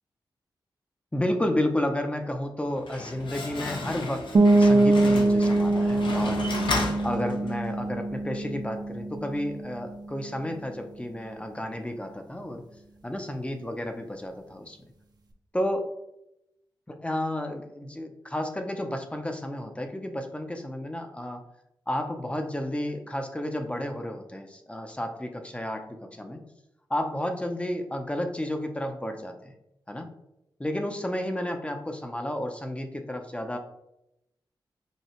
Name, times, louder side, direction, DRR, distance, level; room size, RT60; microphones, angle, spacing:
voice 1, 1.1-6.4 7.0-12.6 13.0-14.8 15.5-15.8 16.9-21.4 21.9-26.4 26.9-29.5 29.9-30.1 30.6-33.6, left 1 dB, 15° left, 5 dB, 0.6 m, -31 dB
Slam, 2.6-7.7, left 2 dB, 70° left, 0.8 m, -33 dB
sound 1, 4.3-9.9, right 2 dB, 50° right, 0.6 m, -23 dB
5.5 x 2.3 x 3.0 m, 0.84 s
cardioid pair, 55°, 8 cm